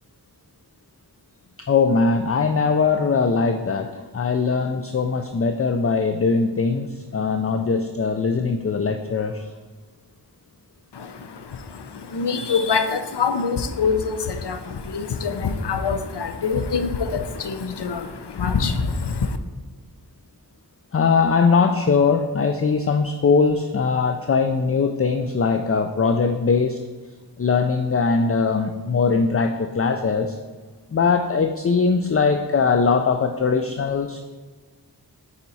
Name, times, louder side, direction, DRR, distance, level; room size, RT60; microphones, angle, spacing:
voice 1, 1.7-9.5 20.9-26.8 27.4-30.4 30.9-34.2, left 5 dB, 35° left, 6 dB, 0.4 m, -21 dB
voice 2, 10.9-19.4, left 5 dB, 80° left, 9 dB, 0.6 m, -25 dB
9.0 x 4.3 x 4.1 m, 1.4 s
wide cardioid pair, 60°, 41 cm